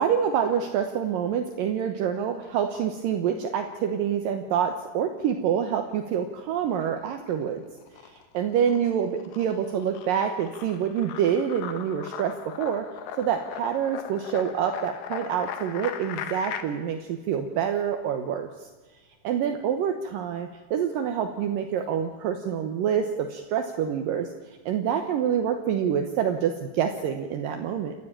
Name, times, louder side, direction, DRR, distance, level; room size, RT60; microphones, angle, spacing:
voice 1, 0.0-7.6 8.0-12.9 13.2-18.7 19.2-24.3 24.7-28.0, right 8 dB, 70° right, 5 dB, 2.1 m, -27 dB
sound 1, 6.7-7.5 7.8-16.6, left 9 dB, 65° left, 2.8 m, -39 dB
28.5 x 12.5 x 9.0 m, 1.2 s
omnidirectional pair, 5.4 m